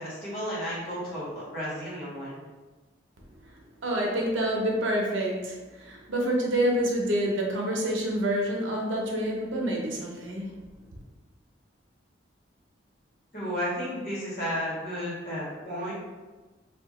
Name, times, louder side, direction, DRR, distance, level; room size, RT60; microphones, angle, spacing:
voice 1, 0.0-2.4 13.3-15.9, equal, 50° left, -8 dB, 1.5 m, -33 dB
voice 2, 3.8-10.6, right 1 dB, 90° right, -1 dB, 0.7 m, -27 dB
2.8 x 2.4 x 3.7 m, 1.2 s
head